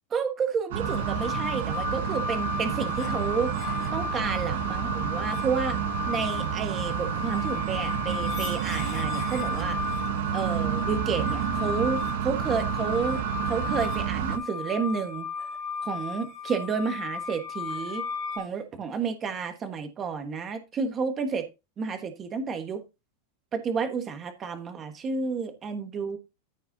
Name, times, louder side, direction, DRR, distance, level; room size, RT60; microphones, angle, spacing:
voice 1, 0.1-3.5 3.9-9.8 10.3-15.3 15.8-18.0 18.3-21.5 21.8-22.8 23.5-26.2, right 5 dB, 15° right, 1.3 m, -31 dB
sound 1, 0.7-14.4, right 9 dB, 55° right, 1.0 m, -30 dB
sound 2, 0.8-18.4, left 5 dB, 20° left, 3.2 m, -35 dB
14.0 x 5.4 x 2.7 m
supercardioid pair, 180°, 0 cm